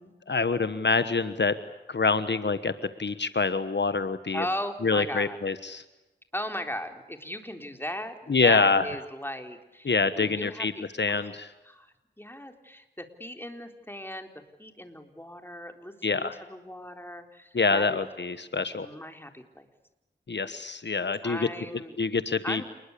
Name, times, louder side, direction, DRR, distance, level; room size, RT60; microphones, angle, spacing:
voice 1, 0.3-1.5 1.9-2.7 3.0-4.4 4.8-5.8 8.3-8.9 9.8-10.7 11.0-11.5 16.0-16.4 17.5-18.9 20.3-21.5 22.0-22.6, left 4 dB, 70° left, 12 dB, 1.3 m, -25 dB
voice 2, 4.3-5.4 6.3-11.3 11.7-14.3 14.6-18.0 18.7-19.7 21.2-22.0 22.4-22.6, left 1 dB, 10° left, 6 dB, 4.0 m, -38 dB
28.5 x 21.0 x 8.5 m, 1.0 s
wide cardioid pair, 45°, 19 cm